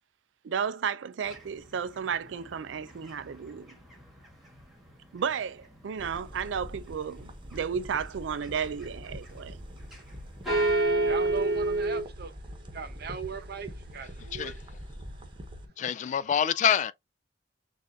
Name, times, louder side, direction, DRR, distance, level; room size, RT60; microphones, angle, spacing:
voice 1, 0.4-3.8 5.1-9.6 11.0-11.2, right 7 dB, 80° right, 0.4 m, -33 dB
sound 1, 1.3-5.4 5.7-6.5 7.0-7.6 7.9-10.1 10.4-12.0, right 2 dB, ahead, 1.7 m, -29 dB
sound 2, 6.0-15.7, equal, 30° right, 1.0 m, -44 dB
voice 2, 11.0-12.3 12.7-14.6, right 5 dB, 60° right, 0.8 m, -38 dB
voice 3, 15.8-16.9, left 8 dB, 40° left, 0.3 m, -26 dB
6.3 x 2.5 x 2.7 m
head